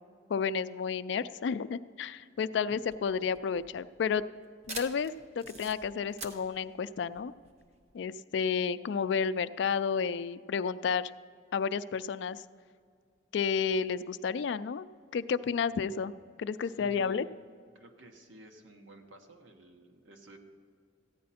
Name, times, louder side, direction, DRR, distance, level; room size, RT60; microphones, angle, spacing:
voice 1, 0.3-4.2 4.7-7.3 7.9-11.1 11.5-12.4 13.3-14.8 15.1-16.1 16.4-17.3, left 6 dB, 65° left, 14 dB, 0.3 m, -31 dB
sound 1, 2.8-7.9, right 2 dB, 35° right, 0.9 m, -46 dB
voice 2, 16.8-17.3 17.7-20.4, right 1 dB, 90° right, 4 dB, 1.2 m, -53 dB
14.5 x 9.5 x 4.2 m, 2.2 s
head